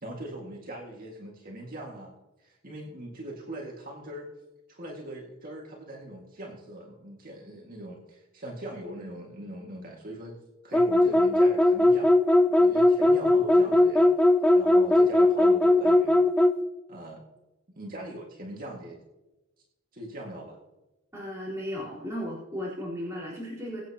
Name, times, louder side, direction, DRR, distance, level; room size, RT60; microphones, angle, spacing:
voice 1, 0.0-4.3 4.7-10.4 10.6-12.1 12.5-14.1 14.5-16.2 16.9-17.2 17.7-19.0 19.9-20.6, right 1 dB, 45° right, -1 dB, 1.9 m, -41 dB
sound 1, 10.7-16.6, left 1 dB, 5° left, 0.5 m, -19 dB
voice 2, 21.1-23.8, equal, 15° right, -9 dB, 3.9 m, -35 dB
23.0 x 8.4 x 2.9 m, 1.0 s
head